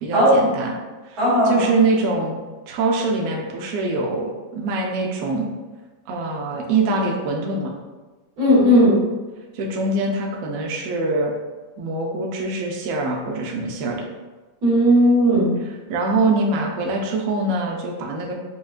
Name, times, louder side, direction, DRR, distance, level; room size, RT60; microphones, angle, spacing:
voice 1, 0.0-0.7 1.0-2.4 2.7-5.5 6.1-7.7 9.5-11.3 11.8-14.0 15.9-18.3, right 3 dB, 80° right, 0 dB, 0.7 m, -23 dB
voice 2, 1.2-1.7 8.4-9.0 14.6-15.5, equal, 55° right, -8 dB, 1.9 m, -16 dB
5.7 x 2.3 x 2.4 m, 1.2 s
omnidirectional pair, 2.0 m